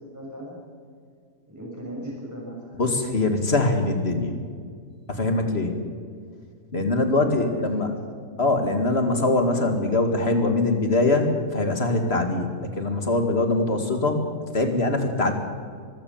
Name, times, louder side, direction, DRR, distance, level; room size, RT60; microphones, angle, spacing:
voice 1, 0.1-0.6 1.5-2.8 7.1-7.4 7.7-8.0, right 1 dB, 10° right, -4 dB, 6.6 m, -37 dB
voice 2, 2.8-4.4 5.1-5.8 6.7-7.9 8.4-14.2 14.5-15.3, left 2 dB, 40° left, 5 dB, 2.3 m, -23 dB
24.5 x 15.5 x 7.3 m, 2.1 s
omnidirectional pair, 1.7 m